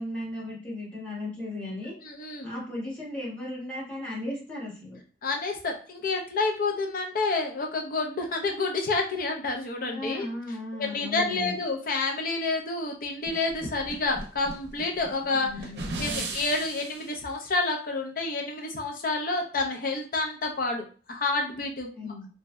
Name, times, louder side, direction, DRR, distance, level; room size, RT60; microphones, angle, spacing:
voice 1, 0.0-1.9 2.4-5.0 9.8-11.6 15.3-16.2 21.9-22.3, left 1 dB, 10° left, -8 dB, 1.3 m, -36 dB
voice 2, 2.0-2.5 5.2-10.3 10.8-15.5 16.0-22.1, left 3 dB, 50° left, 2 dB, 0.6 m, -29 dB
sound 1, 13.2-17.1, right 2 dB, 70° right, 0.6 m, -37 dB
3.1 x 2.6 x 2.2 m, 0.38 s
head